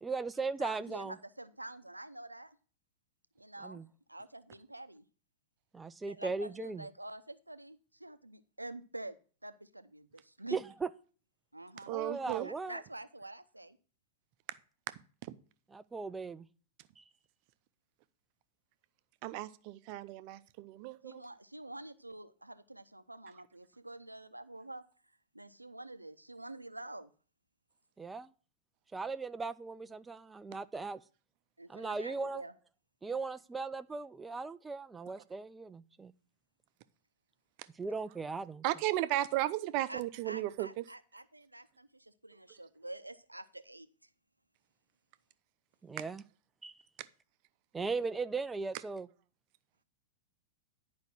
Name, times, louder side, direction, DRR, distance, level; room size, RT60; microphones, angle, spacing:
voice 1, 0.0-1.2 3.6-3.9 5.7-6.9 10.5-10.9 11.9-12.8 15.7-16.5 17.0-17.1 28.0-28.3 28.9-31.0 31.7-32.4 33.0-36.1 37.7-38.6 45.8-46.2 46.6-46.8 47.7-49.1, right 4 dB, 10° right, 0.4 m, -38 dB
voice 2, 0.6-2.6 3.4-3.8 4.1-5.0 6.1-9.2 9.4-10.6 11.5-11.9 12.4-13.8 21.0-24.8 25.3-27.1 31.6-32.5 39.9-43.9, right 2 dB, 90° right, 0.7 m, -47 dB
voice 3, 11.9-12.5 15.2-15.3 19.2-21.2 38.6-40.8, right 15 dB, 45° right, 0.7 m, -35 dB
10.5 x 5.2 x 6.0 m
figure-of-eight pair, 95°, 0 cm